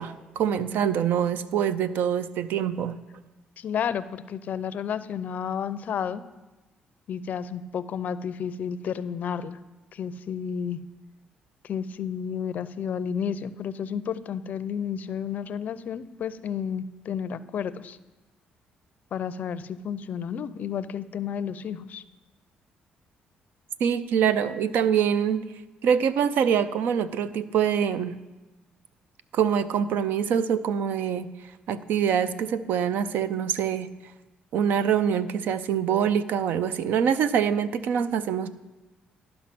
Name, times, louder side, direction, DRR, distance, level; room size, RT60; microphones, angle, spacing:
voice 1, 0.0-3.0 23.8-25.5 25.8-28.2 29.3-31.3 31.7-34.0 34.5-38.5, right 8 dB, 75° right, 13 dB, 0.5 m, -25 dB
voice 2, 3.6-6.2 7.1-9.6 9.9-10.8 11.6-18.0 19.1-22.0, left 7 dB, 60° left, 15 dB, 0.4 m, -31 dB
11.5 x 5.2 x 5.9 m, 1.1 s
cardioid pair, 95°, 3 cm